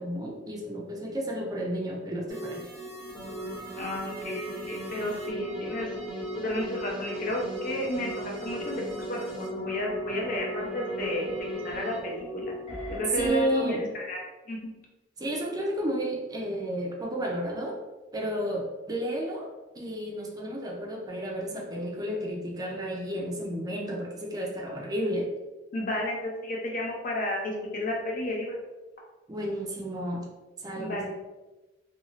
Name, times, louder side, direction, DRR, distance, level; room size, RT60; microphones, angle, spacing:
voice 1, 0.0-2.7 13.2-13.9 15.2-17.8 18.1-19.5 19.7-25.3 29.3-30.3 30.6-31.1, equal, 20° right, -1 dB, 0.4 m, -32 dB
sound 1, 2.3-13.3, equal, 35° left, 1.1 m, -37 dB
voice 2, 3.8-5.9 6.4-11.3 11.6-12.5 12.9-13.8 14.1-14.2 14.5-14.7 25.7-28.6 30.8-31.1, left 1 dB, 50° left, -2 dB, 0.7 m, -32 dB
2.6 x 2.3 x 3.0 m, 1.1 s
head